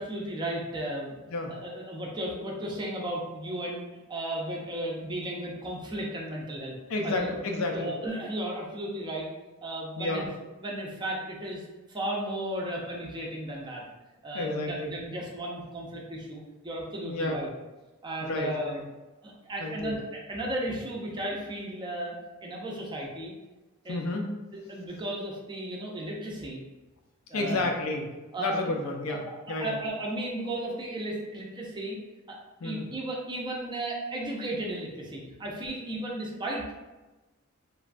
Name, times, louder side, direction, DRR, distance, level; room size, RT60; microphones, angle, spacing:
voice 1, 0.0-3.8 4.1-6.8 7.0-7.4 7.7-9.3 9.6-10.3 10.6-13.8 14.2-17.5 18.0-18.8 19.2-22.1 22.4-23.3 23.8-24.1 24.5-26.6 27.3-27.7 28.3-28.5 29.1-29.4 29.6-32.0 32.3-32.4 32.6-36.8, right 1 dB, 20° right, -2 dB, 0.5 m, -35 dB
voice 2, 6.9-7.9 10.0-10.3 14.3-14.9 17.1-17.4 18.2-18.8 19.6-19.9 23.9-24.3 27.3-28.1 28.4-29.2 29.5-29.8 32.6-32.9, left 2 dB, 75° left, 2 dB, 0.5 m, -30 dB
3.1 x 2.2 x 2.4 m, 1.1 s
head